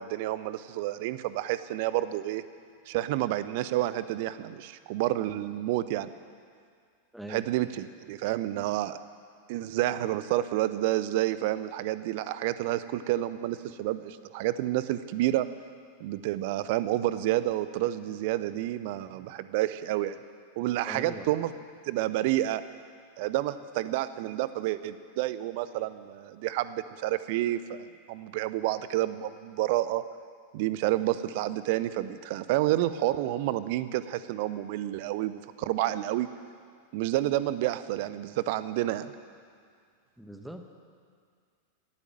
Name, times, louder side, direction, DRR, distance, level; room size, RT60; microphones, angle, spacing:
voice 1, 0.0-2.4 2.9-6.1 7.3-9.0 9.5-15.5 16.0-20.2 20.6-21.5 21.9-22.6 23.2-30.0 30.5-36.3 36.9-39.1, right 15 dB, 50° right, 14 dB, 0.6 m, -29 dB
voice 2, 7.1-7.5 20.8-21.3 40.2-40.7, equal, ahead, 5 dB, 1.3 m, -41 dB
17.0 x 8.5 x 7.8 m, 2.1 s
figure-of-eight pair, 90°, 0 cm